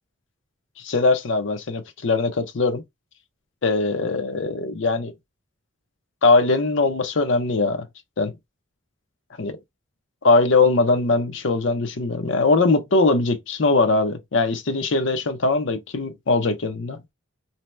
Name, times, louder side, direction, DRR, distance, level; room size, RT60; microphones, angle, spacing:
voice 1, 0.8-2.8 3.6-5.1 6.2-7.9 8.2-8.3 9.4-9.6 10.2-17.0, left 3 dB, 65° left, 0.6 m, -21 dB
2.8 x 2.1 x 3.1 m
head